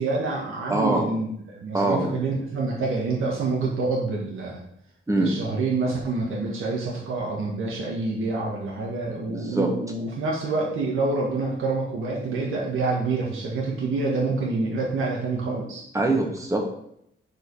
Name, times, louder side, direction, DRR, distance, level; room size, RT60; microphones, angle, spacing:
voice 1, 0.0-4.6 5.1-15.8, right 3 dB, 85° right, -3 dB, 1.8 m, -27 dB
voice 2, 0.7-1.1 1.7-2.1 5.1-5.3 9.3-9.7 15.9-16.6, right 2 dB, 15° right, 2 dB, 1.8 m, -23 dB
9.6 x 5.1 x 4.9 m, 0.73 s
wide cardioid pair, 115°, 20 cm